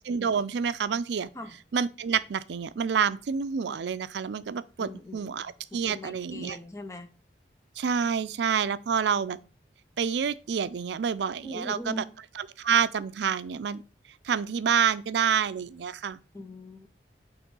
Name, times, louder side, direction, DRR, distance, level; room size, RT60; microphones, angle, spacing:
voice 1, 0.1-1.3 1.7-6.6 7.8-9.4 10.0-12.0 12.3-13.8 14.2-16.2, right 7 dB, 80° right, 0.4 m, -28 dB
voice 2, 4.8-5.4 5.7-7.1 11.4-12.1 16.3-16.9, left 1 dB, 15° left, 0.6 m, -40 dB
6.0 x 3.1 x 5.3 m
head